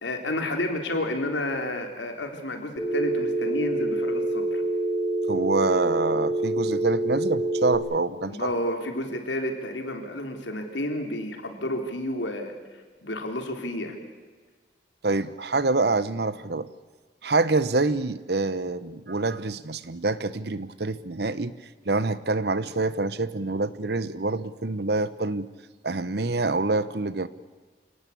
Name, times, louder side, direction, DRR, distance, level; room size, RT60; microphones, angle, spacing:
voice 1, 0.0-4.6 8.2-12.5 13.0-14.0, left 1 dB, 85° left, 4 dB, 3.5 m, -30 dB
Telephone, 2.8-7.8, right 2 dB, ahead, 5.6 m, -26 dB
voice 2, 5.3-8.5 15.0-16.7 17.2-21.5 21.8-25.5 25.8-27.3, right 3 dB, 60° right, 16 dB, 1.0 m, -26 dB
27.0 x 18.0 x 8.5 m, 1.4 s
head